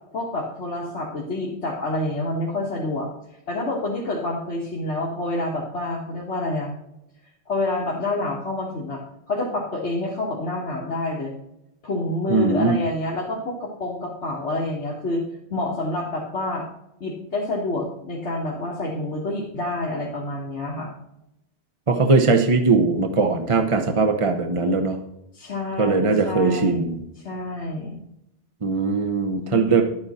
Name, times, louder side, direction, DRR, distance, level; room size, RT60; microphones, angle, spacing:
voice 1, 0.1-3.1 3.5-6.7 7.5-9.0 9.3-11.3 11.8-15.2 15.5-16.7 17.0-20.9 25.3-28.0 29.4-29.8, left 2 dB, 85° left, -3 dB, 1.9 m, -28 dB
voice 2, 12.3-12.7 21.9-25.0 25.8-27.0 28.6-29.8, right 4 dB, 30° right, 4 dB, 0.8 m, -20 dB
11.0 x 8.8 x 4.2 m, 0.86 s
omnidirectional pair, 1.1 m